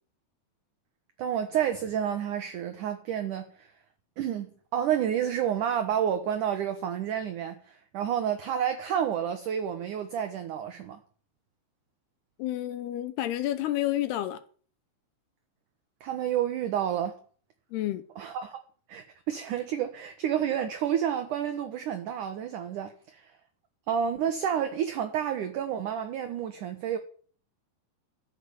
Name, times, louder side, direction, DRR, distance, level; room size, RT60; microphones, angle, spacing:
voice 1, 1.2-3.7 4.2-11.0 16.0-17.2 18.2-18.6 18.9-23.3 23.9-27.0, right 9 dB, 70° right, 2.1 m, -30 dB
voice 2, 12.4-14.4 17.7-18.0, left 13 dB, 75° left, 2.7 m, -30 dB
13.0 x 9.1 x 7.1 m
omnidirectional pair, 5.1 m